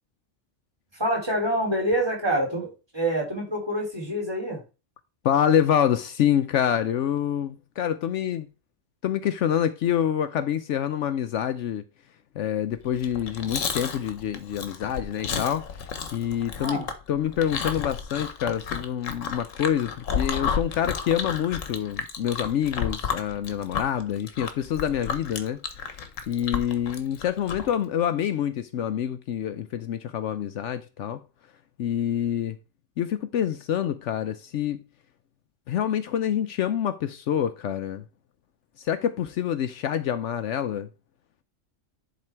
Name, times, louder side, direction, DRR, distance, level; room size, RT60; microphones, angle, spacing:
voice 1, 0.9-2.7 2.9-4.6 16.6-16.9, right 1 dB, 20° right, 3.3 m, -26 dB
voice 2, 5.2-8.5 9.0-11.8 12.3-16.8 17.1-31.2 31.8-32.6 33.0-34.8 35.7-38.0 38.8-40.9, left 9 dB, 70° left, 0.9 m, -26 dB
Chewing mastication, 12.9-27.7, left 6 dB, 85° left, 1.4 m, -32 dB
11.0 x 3.8 x 4.4 m
omnidirectional pair, 1.3 m